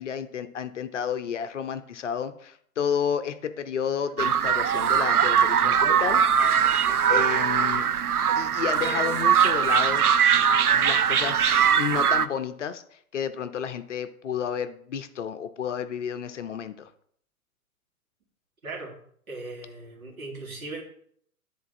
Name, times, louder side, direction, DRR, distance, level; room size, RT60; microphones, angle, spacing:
voice 1, 0.0-6.2 6.5-6.6 7.1-7.9 8.4-10.0 10.7-12.8 13.1-16.9, left 7 dB, 55° left, 11 dB, 0.7 m, -31 dB
sound 1, 4.2-12.3, right 8 dB, 85° right, 0.5 m, -21 dB
sound 2, 4.6-5.1 6.1-7.1 8.7-9.8 11.4-12.1, right 2 dB, 40° right, 3.1 m, -50 dB
voice 2, 18.6-19.0 19.3-20.8, right 3 dB, 70° right, -1 dB, 2.4 m, -38 dB
9.6 x 3.9 x 4.0 m, 0.64 s
figure-of-eight pair, 115°, 44 cm